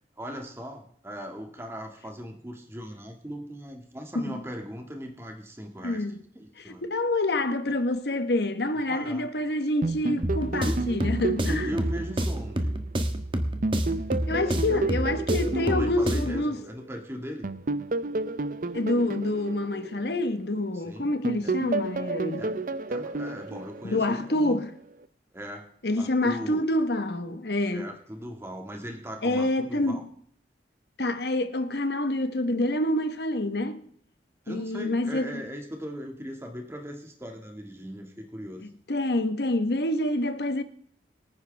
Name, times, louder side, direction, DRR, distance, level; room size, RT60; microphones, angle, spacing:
voice 1, 0.2-6.0 6.3-6.8 8.9-9.3 10.5-10.8 11.5-12.7 14.7-14.8 15.4-17.5 20.7-21.1 21.4-21.5 22.4-22.5 22.9-24.6 25.3-25.6 26.0-26.7 27.7-30.0 34.4-38.7, equal, 15° right, 1.9 m, -38 dB
voice 2, 5.8-6.2 6.6-11.7 14.3-16.6 18.7-22.5 23.8-24.7 25.8-27.9 29.2-30.1 31.0-33.8 34.5-35.3 38.9-40.6, left 1 dB, 70° left, 1.2 m, -27 dB
sound 1, 9.8-13.2 13.6-16.9 17.4-20.8 21.2-24.5, right 3 dB, 50° right, 0.6 m, -32 dB
sound 2, 10.2-16.4, right 1 dB, 30° right, 1.3 m, -29 dB
23.5 x 9.7 x 3.4 m
head